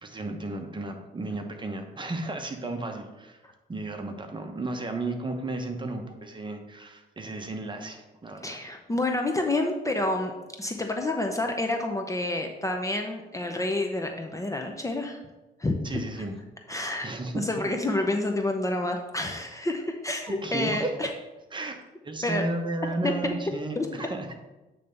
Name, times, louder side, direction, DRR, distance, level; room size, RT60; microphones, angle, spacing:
voice 1, 0.0-3.4 3.7-8.6 15.8-16.3 17.0-17.5 20.3-20.9 21.5-21.8 22.0-24.3, right 2 dB, 25° right, 4 dB, 1.0 m, -34 dB
voice 2, 8.4-15.2 15.6-15.8 16.7-17.1 17.3-21.1 22.2-22.4 23.0-23.4 23.8-23.9, left 2 dB, 15° left, 3 dB, 0.7 m, -28 dB
8.5 x 3.4 x 5.3 m, 1.1 s
cardioid pair, 90°, 20 cm